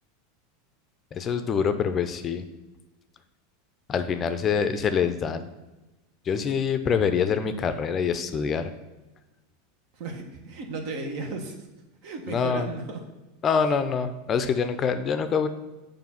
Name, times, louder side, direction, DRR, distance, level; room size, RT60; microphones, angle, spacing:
voice 1, 1.1-2.4 3.9-5.5 6.3-8.7 12.3-12.7 13.4-15.5, left 6 dB, 35° left, 9 dB, 0.5 m, -25 dB
voice 2, 9.9-11.6 12.0-13.0, right 3 dB, 60° right, 5 dB, 1.1 m, -34 dB
7.0 x 2.6 x 5.7 m, 1.1 s
hypercardioid pair, 95°, 0 cm